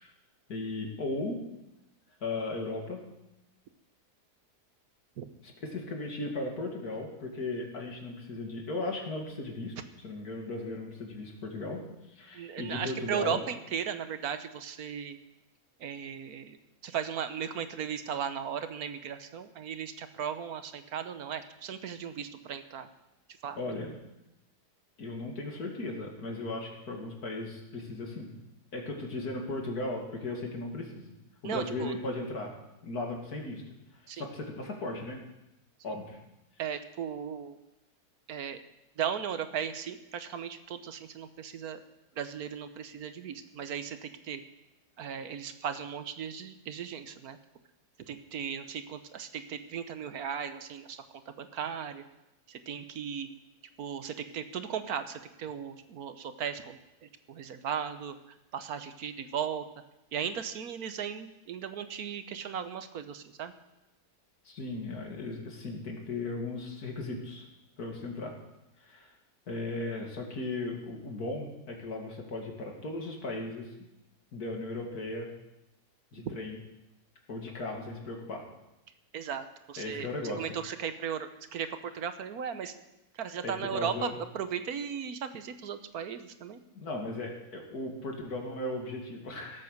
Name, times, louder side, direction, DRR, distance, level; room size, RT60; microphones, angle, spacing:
voice 1, 0.5-1.4 2.2-3.0 5.4-9.7 10.0-13.4 23.6-24.0 25.0-28.3 28.7-31.1 31.4-32.5 32.8-33.6 34.1-35.2 35.8-36.2 64.4-67.5 67.8-68.3 68.8-69.1 69.5-73.7 74.3-75.3 76.1-76.6 77.3-78.4 79.8-80.5 83.4-84.2 86.7-89.6, left 2 dB, 70° left, 1 dB, 2.7 m, -36 dB
voice 2, 12.3-15.2 15.8-16.6 16.8-22.9 23.4-23.6 31.4-31.9 34.1-34.2 36.6-37.6 38.3-38.6 39.0-41.8 42.2-44.4 45.0-47.4 48.1-51.1 51.4-52.0 52.5-53.3 53.8-58.1 58.5-59.6 60.1-63.5 76.2-76.3 79.1-80.1 80.4-81.7 81.9-82.7 83.1-86.6, right 8 dB, 70° right, 10 dB, 1.4 m, -36 dB
17.5 x 8.3 x 6.6 m, 0.93 s
omnidirectional pair, 1.7 m